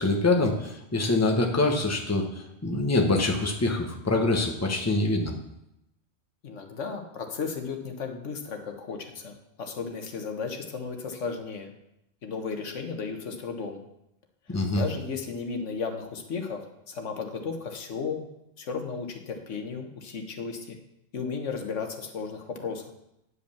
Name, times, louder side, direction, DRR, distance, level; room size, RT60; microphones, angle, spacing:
voice 1, 0.0-2.3 2.6-5.3 14.5-14.8, left 2 dB, 15° left, 2 dB, 1.0 m, -24 dB
voice 2, 6.4-11.7 12.2-13.8 14.5-16.6 16.9-18.3 18.6-20.8 21.1-22.9, left 5 dB, 85° left, 5 dB, 1.4 m, -34 dB
9.6 x 5.3 x 6.9 m, 0.84 s
omnidirectional pair, 1.2 m